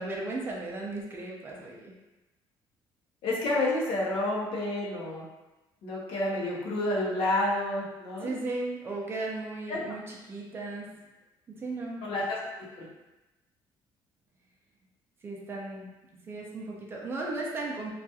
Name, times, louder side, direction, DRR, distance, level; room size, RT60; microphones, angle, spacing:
voice 1, 0.0-2.0 8.2-11.0 11.5-12.1 15.2-17.9, right 2 dB, 25° right, -2 dB, 0.4 m, -36 dB
voice 2, 3.2-5.2 5.8-8.3 9.7-9.8 12.0-12.4 12.8-12.9, left 1 dB, 70° left, -4 dB, 0.7 m, -29 dB
2.8 x 2.3 x 2.2 m, 1.0 s
cardioid pair, 165°, 9 cm